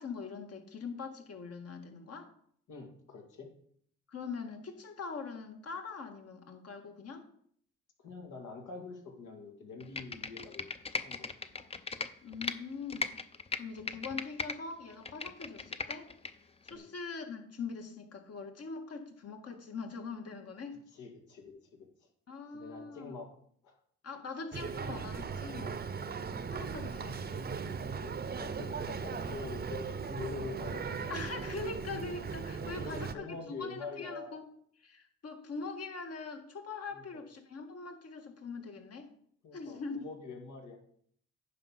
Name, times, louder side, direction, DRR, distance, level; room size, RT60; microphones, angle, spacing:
voice 1, 0.0-2.3 4.1-7.3 12.2-13.1 13.6-16.1 16.6-20.8 22.3-23.1 24.0-25.8 26.5-27.6 31.1-34.4 34.8-39.1 39.5-40.1, left 4 dB, 55° left, 5 dB, 1.8 m, -42 dB
voice 2, 2.7-3.5 8.0-10.6 11.0-11.7 16.7-16.9 20.9-21.5 22.5-23.3 23.6-23.7 28.0-31.2 32.6-34.4 36.9-37.2 39.4-40.8, left 4 dB, 80° left, 3 dB, 2.3 m, -45 dB
Computer keyboard, 9.8-12.6 12.9-14.6 14.9-16.3 16.7-16.8, left 4 dB, 20° left, 0.6 m, -37 dB
Boat Water vehicle, 24.5-33.1, right 5 dB, 30° right, 0.7 m, -38 dB
9.6 x 5.3 x 5.7 m, 0.64 s
cardioid pair, 90°, 30 cm